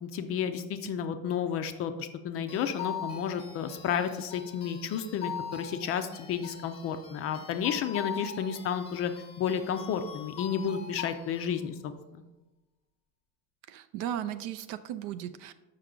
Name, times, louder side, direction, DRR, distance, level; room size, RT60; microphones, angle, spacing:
voice 1, 0.0-9.1 9.4-12.2, left 8 dB, 35° left, 8 dB, 0.4 m, -32 dB
sound 1, 2.5-11.6, left 7 dB, 15° left, 0.8 m, -42 dB
voice 2, 13.7-15.5, right 10 dB, 55° right, 12 dB, 0.5 m, -36 dB
6.7 x 5.8 x 3.7 m, 1.1 s
supercardioid pair, 130°, 40 cm